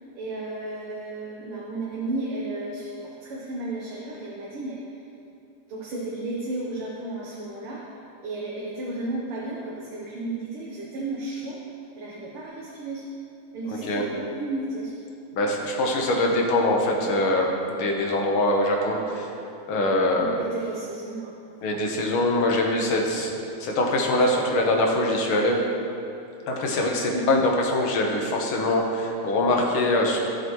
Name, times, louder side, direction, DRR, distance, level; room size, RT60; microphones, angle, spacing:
voice 1, 0.2-5.0 5.7-7.8 8.2-11.6 12.0-13.1 13.5-15.0 20.2-21.4 27.1-27.4, right 2 dB, 90° right, -4 dB, 2.0 m, -33 dB
voice 2, 13.7-14.0 15.3-19.3 19.7-20.4 21.6-23.3 23.6-25.6 26.5-30.2, left 1 dB, 80° left, 0 dB, 2.0 m, -23 dB
16.0 x 6.8 x 3.1 m, 2.7 s
omnidirectional pair, 2.3 m